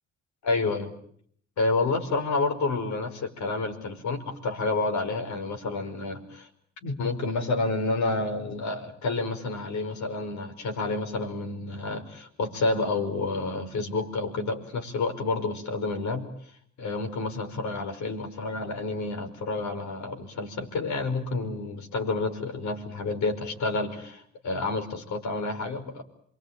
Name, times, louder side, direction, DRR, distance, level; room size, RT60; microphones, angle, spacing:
voice 1, 0.4-0.9 1.6-6.5 6.8-16.2 16.8-26.0, left 3 dB, 70° left, 6 dB, 5.3 m, -29 dB
28.0 x 23.5 x 9.0 m, 0.65 s
cardioid pair, 90°, 30 cm